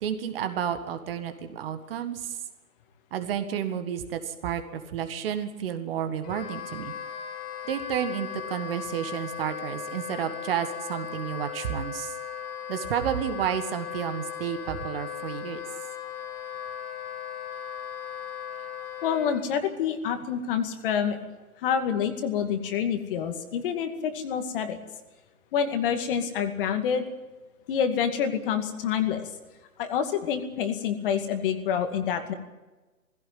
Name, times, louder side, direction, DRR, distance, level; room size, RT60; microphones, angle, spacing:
voice 1, 0.0-2.4 3.1-6.9 7.7-12.1 12.7-15.6, right 9 dB, 40° right, 8 dB, 1.8 m, -31 dB
Wind instrument woodwind instrument, 6.2-19.4, left 8 dB, 20° left, 1.6 m, -37 dB
voice 2, 19.0-21.2 21.6-24.8 25.5-27.1 27.7-29.3 29.8-32.3, left 8 dB, 40° left, 7 dB, 2.3 m, -27 dB
18.0 x 16.0 x 9.5 m, 1.2 s
figure-of-eight pair, 130°, 43 cm